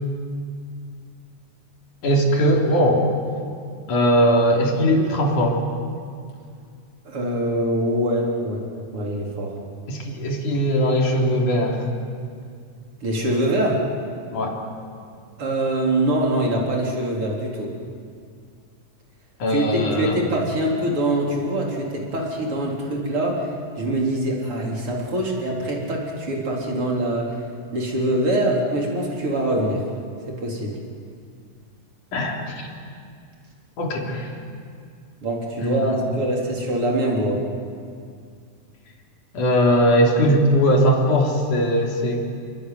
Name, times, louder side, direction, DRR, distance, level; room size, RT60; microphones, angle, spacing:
voice 1, 2.0-3.1 3.9-5.6 9.9-12.0 14.3-14.6 19.4-20.2 32.1-32.7 33.8-34.3 35.6-36.0 39.3-42.4, equal, 85° left, 0 dB, 4.9 m, -20 dB
voice 2, 7.1-8.7 8.9-9.5 13.0-13.8 15.4-17.7 19.5-23.5 23.8-27.3 27.7-29.8 30.3-30.8 35.2-37.4, right 1 dB, 45° right, -1 dB, 4.6 m, -24 dB
29.0 x 22.0 x 9.4 m, 2.2 s
omnidirectional pair, 3.4 m